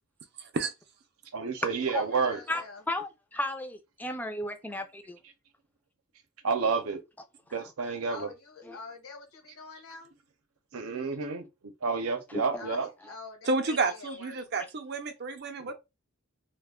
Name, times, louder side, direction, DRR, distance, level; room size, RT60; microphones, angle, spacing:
voice 1, 0.4-0.7 13.4-15.7, right 3 dB, 50° right, 0.5 m, -30 dB
voice 2, 1.3-2.4 6.4-7.0 7.5-8.3 10.7-11.5 11.8-12.9 15.6-15.7, right 5 dB, 90° right, 0.7 m, -30 dB
voice 3, 1.9-2.8 8.1-10.1 12.6-14.4, left 4 dB, 80° left, 1.0 m, -46 dB
voice 4, 2.5-5.2 8.6-8.8 12.3-12.7, left 1 dB, 10° left, 0.3 m, -34 dB
2.4 x 2.2 x 3.5 m
head